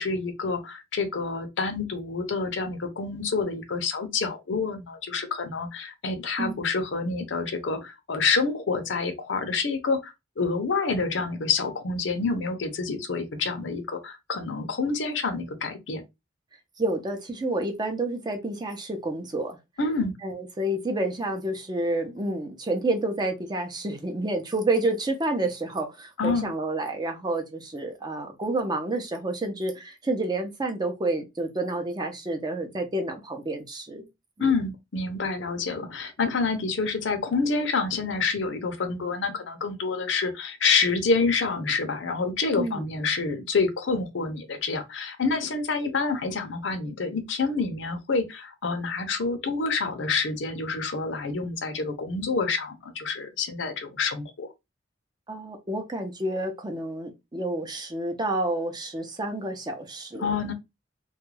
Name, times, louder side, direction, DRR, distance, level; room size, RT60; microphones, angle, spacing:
voice 1, 0.0-16.0 19.8-20.2 26.2-26.5 34.4-54.5 60.2-60.5, left 4 dB, 75° left, 0.6 m, -27 dB
voice 2, 16.8-19.6 20.2-34.1 34.4-34.5 42.5-42.8 55.3-60.3, right 2 dB, 25° right, 0.6 m, -29 dB
2.3 x 2.1 x 3.1 m
head